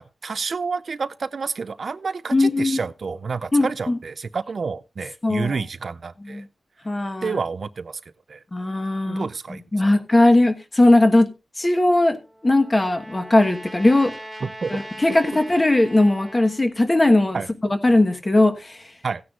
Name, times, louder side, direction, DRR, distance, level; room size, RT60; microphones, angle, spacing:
voice 1, 0.0-6.4 7.2-8.0 8.3-8.4 9.1-9.9 14.4-14.7 17.3-17.5 19.0-19.2, right 5 dB, 55° right, 0.5 m, -29 dB
voice 2, 2.3-2.8 3.5-4.0 5.2-5.6 6.3-6.4 6.8-7.3 8.5-9.2 9.5-11.3 11.6-12.2 12.4-14.1 14.7-18.8, left 2 dB, 25° left, 1.3 m, -19 dB
Trumpet, 11.9-16.6, right 1 dB, ahead, 2.0 m, -40 dB
16.5 x 9.5 x 2.4 m
wide cardioid pair, 135°, 0 cm